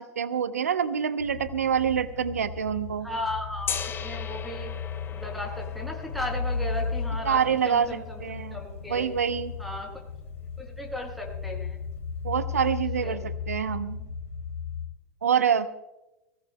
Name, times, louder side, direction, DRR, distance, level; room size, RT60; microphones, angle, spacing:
voice 1, 0.0-3.1 7.2-8.6 8.9-9.5 12.2-14.0 15.2-15.7, right 7 dB, 85° right, 12 dB, 0.8 m, -26 dB
sound 1, 1.2-14.9, left 5 dB, 80° left, 1.9 m, -35 dB
voice 2, 3.0-4.7 5.1-9.1 9.6-9.9 10.6-11.8 13.0-13.2, left 1 dB, ahead, -1 dB, 6.6 m, -36 dB
Gong, 3.7-9.6, left 6 dB, 30° left, 1.7 m, -40 dB
23.0 x 17.5 x 2.2 m, 0.95 s
hypercardioid pair, 85°, 8 cm